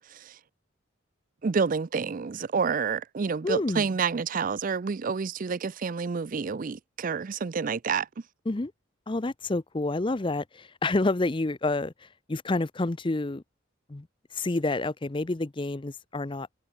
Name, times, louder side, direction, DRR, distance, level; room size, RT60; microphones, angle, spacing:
voice 1, 1.4-8.1, right 5 dB, 40° right, 0.4 m, -29 dB
voice 2, 3.4-3.9 8.5-8.7 9.1-13.4 13.9-14.1 14.3-16.5, left 2 dB, 25° left, 0.6 m, -29 dB
head